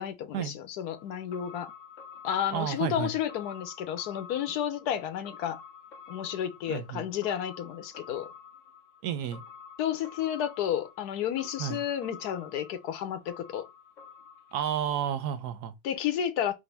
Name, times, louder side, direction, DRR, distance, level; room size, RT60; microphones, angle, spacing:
voice 1, 0.0-1.7 2.2-5.6 6.1-8.3 9.8-13.7 15.8-16.5, left 10 dB, 80° left, 1.2 m, -31 dB
sound 1, 0.9-15.1 15.4-15.5, left 6 dB, 55° left, 1.1 m, -49 dB
voice 2, 2.5-3.1 6.7-7.0 9.0-9.4 11.6-11.8 14.5-15.7, right 9 dB, 85° right, 1.3 m, -31 dB
5.0 x 2.8 x 3.3 m
omnidirectional pair, 1.7 m